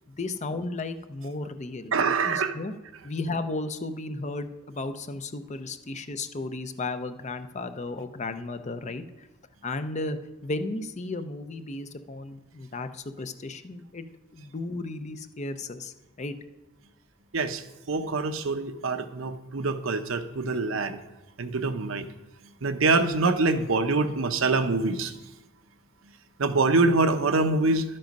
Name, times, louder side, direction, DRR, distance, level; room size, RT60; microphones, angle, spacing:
voice 1, 0.1-1.9 2.2-2.7 3.0-9.3 9.6-10.2 10.4-14.0 14.3-16.4, left 2 dB, 35° left, 10 dB, 0.6 m, -34 dB
voice 2, 1.9-2.5 17.3-17.6 17.9-21.0 21.4-22.1 22.6-25.1 26.4-27.8, right 3 dB, 75° right, 9 dB, 0.8 m, -25 dB
11.5 x 7.6 x 5.3 m, 1.0 s
head